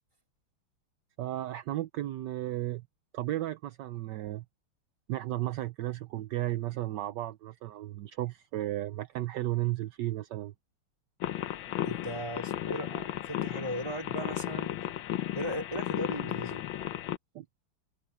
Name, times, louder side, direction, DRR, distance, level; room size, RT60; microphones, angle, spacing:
voice 1, 1.2-2.8 3.1-4.4 5.1-10.5 17.3-17.5, right 15 dB, 70° right, 1.0 m, -34 dB
sound 1, 11.2-17.2, left 12 dB, 70° left, 1.5 m, -34 dB
voice 2, 11.8-14.8 15.3-16.6, equal, 15° right, 3.2 m, -37 dB
omnidirectional pair, 2.4 m